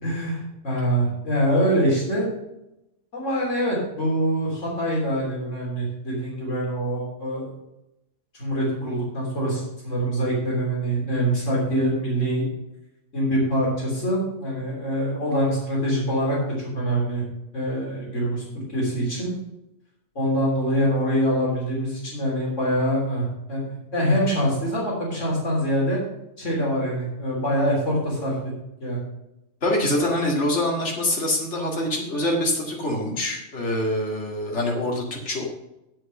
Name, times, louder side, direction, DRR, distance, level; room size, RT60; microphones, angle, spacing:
voice 1, 0.0-2.3 3.1-7.5 8.3-12.5 13.1-17.2 17.5-19.3 20.2-23.6 23.9-26.0 26.4-28.4 28.8-29.0, equal, 85° left, -4 dB, 3.9 m, -24 dB
voice 2, 29.6-35.5, left 1 dB, 70° left, -1 dB, 2.4 m, -25 dB
8.2 x 7.5 x 6.4 m, 0.89 s
omnidirectional pair, 1.2 m